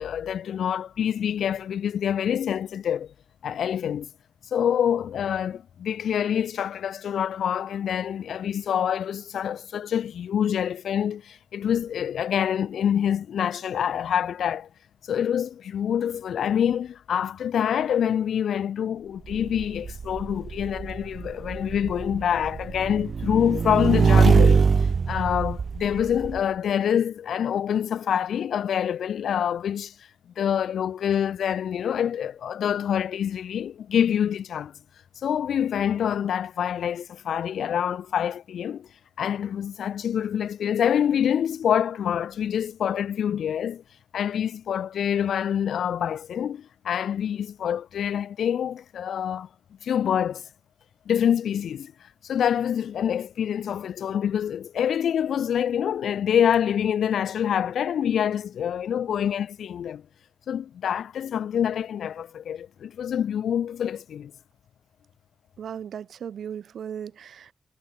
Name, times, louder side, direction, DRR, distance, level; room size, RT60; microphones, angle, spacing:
voice 1, 0.0-3.1 3.4-4.1 4.5-14.7 15.1-24.7 25.1-29.9 30.4-34.7 35.2-38.9 39.2-43.8 44.1-49.5 49.8-50.4 51.1-51.9 52.2-60.0 60.5-64.3, left 9 dB, 90° left, 3.3 m, -26 dB
Motorcycle / Engine, 19.3-26.4, right 5 dB, 50° right, 3.4 m, -23 dB
voice 2, 65.6-67.5, right 8 dB, 80° right, 7.9 m, -36 dB
wide cardioid pair, 105°, 0 cm